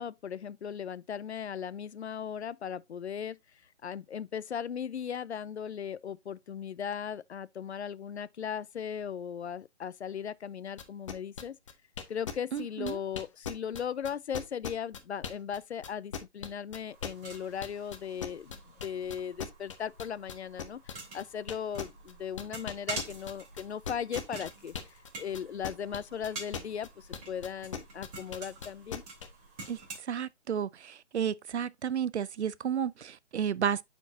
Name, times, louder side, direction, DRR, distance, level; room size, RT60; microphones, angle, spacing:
voice 1, 0.0-3.4 3.8-11.6 12.1-20.8 21.1-29.0, left 8 dB, 70° left, 0.6 m, -37 dB
sound 1, 10.8-15.6 15.8-25.1 25.3-29.3, left 7 dB, 30° left, 0.7 m, -39 dB
voice 2, 12.5-13.0 29.7-29.8 30.1-33.8, right 8 dB, 75° right, 0.5 m, -32 dB
sound 2, 16.9-30.0, right 3 dB, 35° right, 2.9 m, -46 dB
9.1 x 4.4 x 2.6 m
figure-of-eight pair, 150°, 35 cm